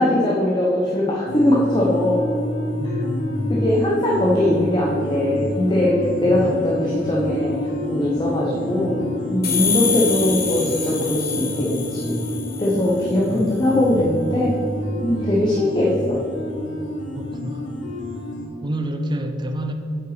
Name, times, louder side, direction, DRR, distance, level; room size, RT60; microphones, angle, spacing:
voice 1, 0.0-2.2 3.5-7.6 7.9-9.0 9.3-12.2 12.6-14.6 15.0-16.2, left 1 dB, 25° left, -4 dB, 1.0 m, -20 dB
sound 1, 1.3-18.5, left 1 dB, 85° left, 1.2 m, -28 dB
voice 2, 2.8-3.4 6.2-6.4 13.3-13.4 17.1-17.9 18.6-19.7, equal, 25° right, 4 dB, 0.6 m, -29 dB
sound 2, 9.4-13.0, left 7 dB, 55° left, 1.8 m, -26 dB
8.2 x 5.8 x 5.0 m, 2.9 s
head